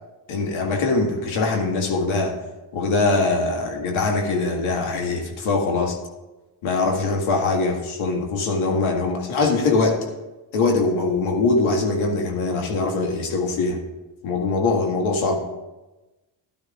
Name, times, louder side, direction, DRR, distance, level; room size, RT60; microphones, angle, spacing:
voice 1, 0.3-2.3 2.7-6.0 6.6-10.1 10.5-13.8 14.2-15.4, left 3 dB, 80° left, 2 dB, 2.0 m, -22 dB
16.5 x 11.5 x 2.5 m, 1.1 s
supercardioid pair, 65°, 48 cm